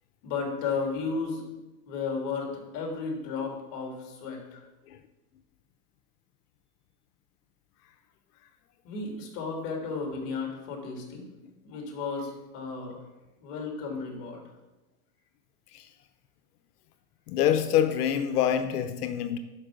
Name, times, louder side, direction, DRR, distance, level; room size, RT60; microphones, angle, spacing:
voice 1, 0.2-1.4 1.9-4.7 8.8-11.3 11.6-13.0 13.4-14.4, left 4 dB, 45° left, 1 dB, 2.8 m, -33 dB
voice 2, 17.3-19.4, left 9 dB, 75° left, 10 dB, 0.9 m, -26 dB
10.0 x 4.7 x 6.2 m, 1.1 s
supercardioid pair, 150°, 47 cm